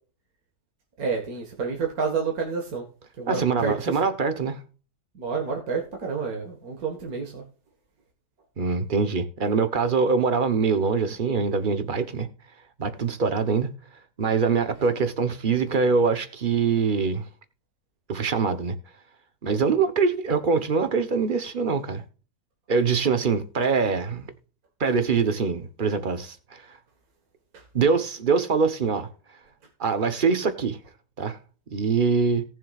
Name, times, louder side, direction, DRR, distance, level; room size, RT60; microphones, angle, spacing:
voice 1, 1.0-2.8 3.2-3.9 5.2-7.4 27.5-27.6, right 5 dB, 65° right, 2.2 m, -29 dB
voice 2, 3.3-4.6 8.6-12.3 12.8-13.7 14.2-17.3 18.1-18.8 19.4-22.0 22.7-24.3 24.8-26.6 27.7-29.1 29.8-30.8 31.2-31.4 31.7-32.4, right 5 dB, 35° right, 1.1 m, -23 dB
18.5 x 7.2 x 2.5 m
omnidirectional pair, 1.7 m